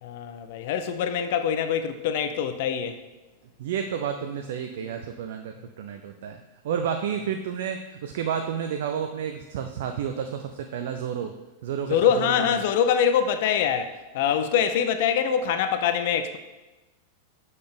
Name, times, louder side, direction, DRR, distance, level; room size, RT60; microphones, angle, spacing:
voice 1, 0.0-3.0 11.9-16.4, left 8 dB, 50° left, 9 dB, 0.5 m, -24 dB
voice 2, 3.6-6.4 6.6-11.3 11.6-12.6, right 8 dB, 55° right, 5 dB, 0.4 m, -31 dB
6.6 x 4.1 x 5.0 m, 1.1 s
figure-of-eight pair, 90°, 0 cm